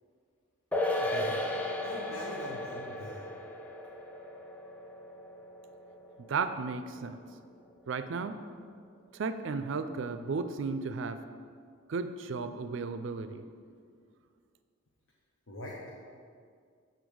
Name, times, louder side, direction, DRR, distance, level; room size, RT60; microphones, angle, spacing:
sound 1, 0.7-7.4 7.7-7.8, left 1 dB, 5° left, 0.4 m, -36 dB
voice 1, 1.0-1.4 1.8-3.2 15.5-15.8, left 1 dB, 80° left, -4 dB, 0.9 m, -42 dB
voice 2, 6.3-7.2 7.9-8.4 9.1-11.2 11.9-13.4, right 4 dB, 60° right, 10 dB, 0.4 m, -34 dB
7.0 x 4.0 x 6.2 m, 2.1 s
head